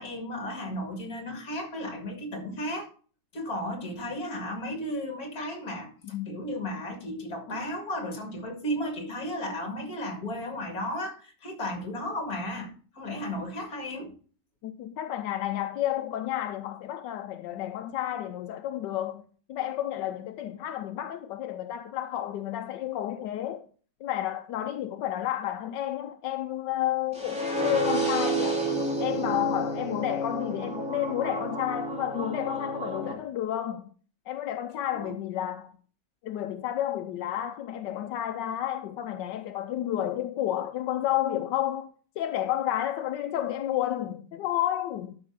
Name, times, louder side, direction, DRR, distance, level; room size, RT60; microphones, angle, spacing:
voice 1, 0.0-2.9 3.3-5.9 6.3-14.1 34.9-35.1, left 1 dB, 60° left, 2.6 m, -34 dB
voice 2, 14.6-23.7 24.0-28.6 29.0-33.8 34.3-35.7 36.2-45.1, left 12 dB, 90° left, 1.3 m, -31 dB
sound 1, 27.1-33.1, right 2 dB, 5° right, 2.7 m, -30 dB
12.0 x 5.8 x 3.6 m
omnidirectional pair, 1.8 m